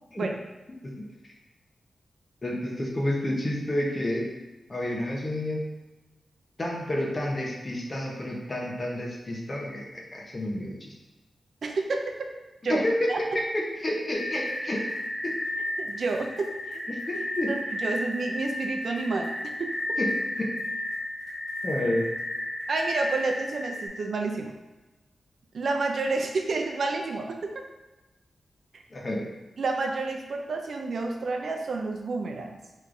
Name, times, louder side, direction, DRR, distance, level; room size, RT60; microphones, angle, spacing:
voice 1, 2.4-4.3 4.7-5.6 6.6-10.9 12.7-13.1 13.8-14.8 15.2-15.3 16.9-17.5 20.0-20.1 20.4-20.5 21.6-22.1 28.9-29.2, left 1 dB, 30° left, -2 dB, 0.9 m, -29 dB
voice 2, 11.6-12.0 12.6-12.8 13.1-13.4 15.8-17.0 17.5-19.8 22.7-24.5 25.5-27.5 28.7-28.8 29.6-32.6, right 3 dB, 60° right, 2 dB, 0.5 m, -30 dB
sound 1, 14.1-23.9, left 1 dB, 80° left, 1.2 m, -33 dB
3.6 x 3.2 x 3.8 m, 1.1 s
wide cardioid pair, 120°, 0 cm